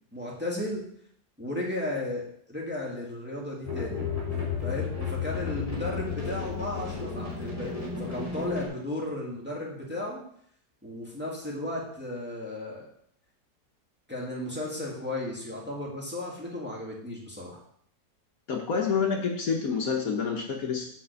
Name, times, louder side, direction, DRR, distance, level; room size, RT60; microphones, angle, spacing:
voice 1, 0.1-0.8 1.4-4.1 4.6-10.2 10.8-12.9 14.1-17.6, left 1 dB, 5° right, -4 dB, 1.8 m, -34 dB
sound 1, 3.6-8.7, left 5 dB, 20° left, 3.1 m, -33 dB
voice 2, 18.5-20.9, left 6 dB, 60° left, 1 dB, 1.3 m, -28 dB
7.4 x 4.2 x 6.6 m, 0.68 s
omnidirectional pair, 1.8 m